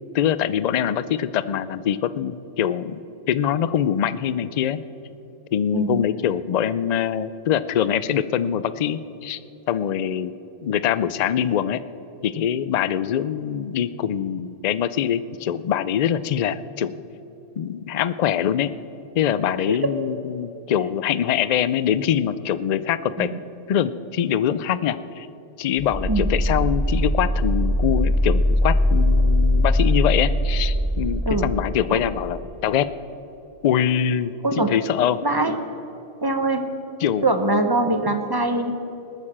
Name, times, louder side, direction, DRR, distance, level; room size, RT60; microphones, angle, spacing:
voice 1, 0.1-4.8 5.5-9.4 9.7-10.3 10.6-11.8 12.2-16.9 17.6-18.7 19.1-23.3 23.7-25.3 25.6-32.9 33.6-35.2 37.0-37.2, left 9 dB, 65° left, 14 dB, 0.4 m, -23 dB
sound 1, 25.8-32.4, left 1 dB, ahead, 2.0 m, -21 dB
voice 2, 34.4-34.7 35.2-35.6 36.2-36.7 37.2-38.7, right 2 dB, 20° right, 6 dB, 0.8 m, -22 dB
20.0 x 6.7 x 7.3 m, 2.9 s
omnidirectional pair, 1.2 m